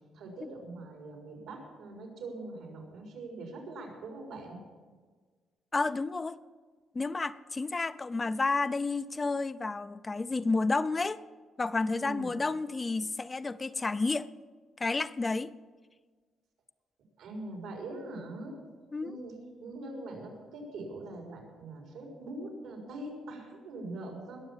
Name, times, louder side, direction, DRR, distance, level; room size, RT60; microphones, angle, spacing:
voice 1, 0.1-4.6 11.9-12.3 17.2-18.6 19.0-19.3 19.6-24.4, right 2 dB, 90° right, 1 dB, 4.3 m, -42 dB
voice 2, 5.7-6.4 6.9-11.2 11.6-14.3 14.8-15.5 18.9-19.1, left 3 dB, 25° left, 13 dB, 0.5 m, -31 dB
20.5 x 7.0 x 7.4 m, 1.5 s
cardioid pair, 90°, 0 cm